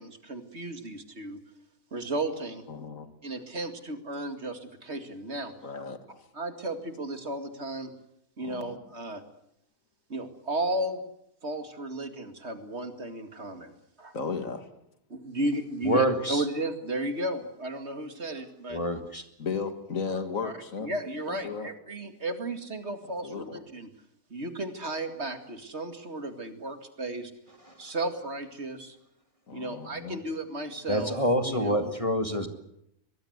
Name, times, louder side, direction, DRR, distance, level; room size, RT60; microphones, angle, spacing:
voice 1, 0.0-1.4 1.9-2.6 3.2-5.5 6.3-7.9 8.4-9.2 10.1-11.0 11.4-13.7 14.0-14.2 15.1-18.8 20.4-20.5 20.8-23.9 24.3-27.3 27.8-29.0 29.5-31.2 31.4-31.9, right 2 dB, 45° right, 8 dB, 2.5 m, -34 dB
voice 2, 2.7-3.1 5.6-6.3 8.4-8.8 14.1-14.7 19.4-20.9 21.3-21.7 23.2-23.6 29.5-30.2, left 5 dB, 60° left, 8 dB, 2.5 m, -35 dB
voice 3, 15.8-16.4 18.7-19.2 30.9-32.5, equal, 20° left, 6 dB, 1.9 m, -26 dB
23.5 x 21.5 x 8.0 m, 0.78 s
omnidirectional pair, 1.6 m